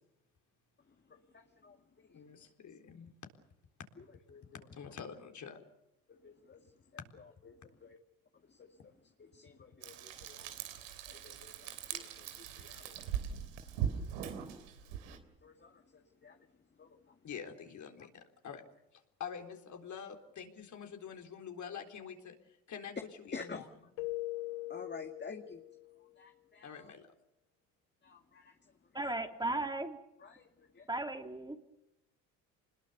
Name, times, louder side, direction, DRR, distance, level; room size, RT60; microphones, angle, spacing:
voice 1, 1.1-2.5 4.0-4.4 6.1-8.0 8.4-13.1 15.4-16.5 16.8-17.2 23.3-23.7 24.7-25.6 26.2-26.9 28.0-28.7 30.2-30.9, left 4 dB, 30° left, 5 dB, 2.1 m, -51 dB
voice 2, 2.1-3.1 4.7-5.7 17.2-18.6 18.9-23.7 26.6-27.1, left 7 dB, 50° left, 4 dB, 4.0 m, -46 dB
Frying (food), 9.8-15.2, right 9 dB, 85° right, 3.3 m, -40 dB
Keyboard (musical), 24.0-26.0, left 19 dB, 80° left, 0.8 m, -41 dB
voice 3, 28.9-30.0 30.9-31.6, right 2 dB, 10° right, 5 dB, 2.9 m, -36 dB
26.0 x 21.0 x 6.8 m, 0.88 s
hypercardioid pair, 70°, 37 cm